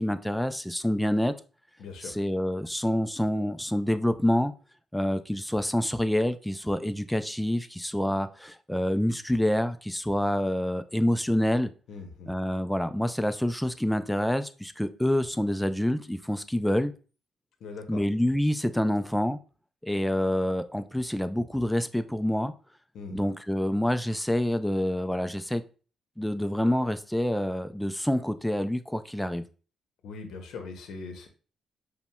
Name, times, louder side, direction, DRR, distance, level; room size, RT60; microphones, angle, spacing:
voice 1, 0.0-1.3 2.0-4.5 4.9-11.7 12.3-16.9 17.9-19.4 19.8-22.5 23.1-25.6 26.2-29.4, left 1 dB, 5° left, 10 dB, 0.3 m, -27 dB
voice 2, 1.8-2.1 11.9-12.3 17.6-18.0 22.9-23.2 30.0-31.3, left 4 dB, 75° left, 5 dB, 0.7 m, -40 dB
5.4 x 2.1 x 2.2 m, 0.37 s
cardioid pair, 90°, 0 cm